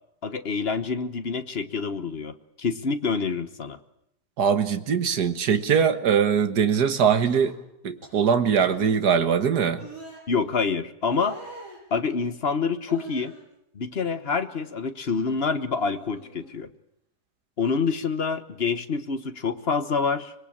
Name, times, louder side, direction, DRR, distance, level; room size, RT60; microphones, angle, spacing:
voice 1, 0.2-3.8 10.3-11.4 11.9-13.3 13.7-16.7 17.6-20.3, left 5 dB, 40° left, 10 dB, 1.4 m, -27 dB
voice 2, 4.4-7.6 7.8-9.8, right 7 dB, 75° right, 8 dB, 2.0 m, -22 dB
sound 1, 7.2-7.6 8.0-8.2 8.6-8.9 9.8-10.2 11.1-11.8 12.9-13.5 13.9-14.8 15.1-15.3 15.8-16.5 17.8-18.0, right 2 dB, 50° right, 8.5 m, -44 dB
24.5 x 21.5 x 8.7 m, 0.79 s
omnidirectional pair, 1.7 m